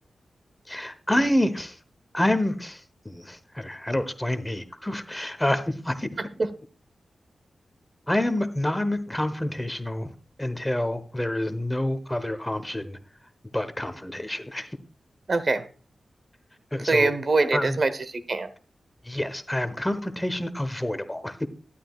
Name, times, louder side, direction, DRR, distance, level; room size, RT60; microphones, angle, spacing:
voice 1, 0.7-1.8 2.1-6.1 8.1-10.1 10.4-13.0 13.5-14.7 16.7-17.1 17.5-17.8 19.0-21.5, left 1 dB, 10° left, 11 dB, 0.9 m, -27 dB
voice 2, 15.3-15.6 16.9-18.5, right 3 dB, 40° right, 13 dB, 0.9 m, -23 dB
12.5 x 11.0 x 2.4 m, 0.38 s
wide cardioid pair, 170°, 0 cm